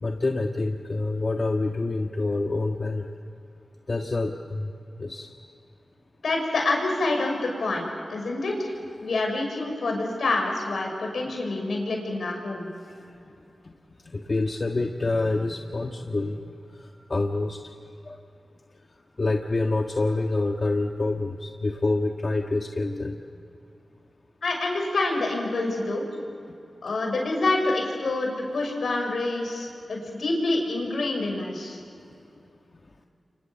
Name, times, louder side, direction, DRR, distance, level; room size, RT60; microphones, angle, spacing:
voice 1, 0.0-3.1 3.9-4.7 5.0-5.3 14.0-17.7 18.0-18.2 19.2-23.2, left 2 dB, 50° left, 3 dB, 1.5 m, -27 dB
voice 2, 6.2-8.7 9.0-12.7 24.4-26.0 26.8-31.8, left 2 dB, 80° left, 2 dB, 6.2 m, -27 dB
29.0 x 25.5 x 7.2 m, 2.7 s
cardioid pair, 45°, 0 cm